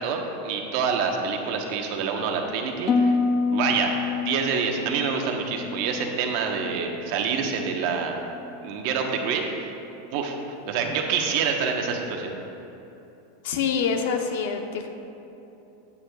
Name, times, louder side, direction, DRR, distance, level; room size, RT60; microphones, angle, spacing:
voice 1, 0.0-3.2 3.5-8.2 8.6-9.7 10.1-10.4 10.7-12.3, right 5 dB, 50° right, 2 dB, 1.2 m, -27 dB
Harp, 2.9-7.0 7.3-7.8 8.3-8.7, left 4 dB, 25° left, 0.5 m, -28 dB
voice 2, 13.4-14.9, left 6 dB, 70° left, 5 dB, 0.9 m, -26 dB
16.0 x 8.4 x 2.4 m, 3.0 s
supercardioid pair, 155°, 0 cm